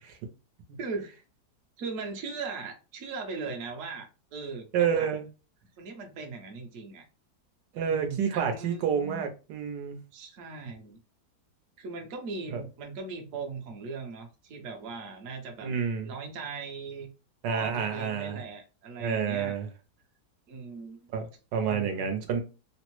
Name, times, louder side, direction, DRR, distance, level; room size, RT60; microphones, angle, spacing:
voice 1, 0.8-1.1 1.8-5.1 5.8-7.0 7.9-9.2 10.1-11.0 11.8-15.7 16.0-17.1 17.5-19.5 20.5-21.0 21.7-22.1, right 4 dB, 60° right, 0.9 m, -39 dB
voice 2, 4.7-5.2 7.7-10.0 12.5-12.6 15.6-16.1 17.4-18.4 19.0-19.7 21.1-22.4, right 7 dB, 85° right, 1.3 m, -29 dB
3.5 x 2.0 x 3.0 m
omnidirectional pair, 1.8 m